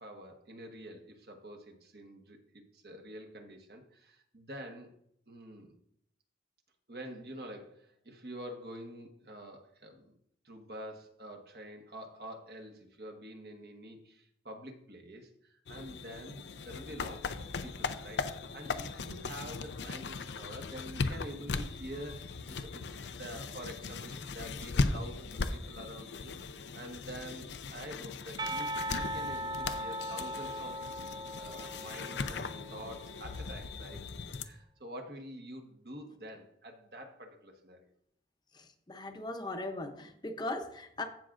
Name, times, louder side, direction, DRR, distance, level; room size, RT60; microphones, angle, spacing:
voice 1, 0.0-4.9 5.3-5.7 6.9-10.1 10.4-30.8 31.4-32.4 32.7-34.0 34.4-37.8, equal, 60° right, 3 dB, 1.3 m, -47 dB
sound 1, 15.7-34.4, left 4 dB, 80° left, 0.5 m, -38 dB
Percussion, 28.4-33.2, equal, 25° right, 0.4 m, -39 dB
voice 2, 38.9-41.0, left 2 dB, 25° left, 6 dB, 0.7 m, -38 dB
15.0 x 6.0 x 2.5 m, 0.71 s
head